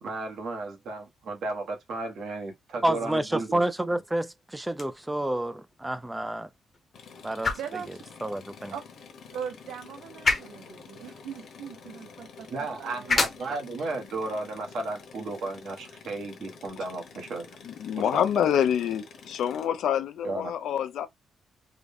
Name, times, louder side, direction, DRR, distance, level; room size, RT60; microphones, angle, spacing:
voice 1, 0.0-3.6 12.5-17.6 17.9-18.2 20.2-20.5, right 3 dB, 60° right, 1.1 m, -34 dB
voice 2, 2.8-6.5 7.2-7.5 8.2-8.7, right 1 dB, 5° right, 0.3 m, -29 dB
sound 1, 4.6-16.7, left 4 dB, 25° left, 0.8 m, -35 dB
sound 2, 6.9-19.7, left 5 dB, 60° left, 1.0 m, -49 dB
voice 3, 7.6-8.0 8.7-8.8 9.3-13.1, right 8 dB, 90° right, 0.5 m, -40 dB
voice 4, 17.6-21.1, left 9 dB, 75° left, 0.5 m, -26 dB
3.7 x 2.1 x 3.5 m
wide cardioid pair, 175°, 0 cm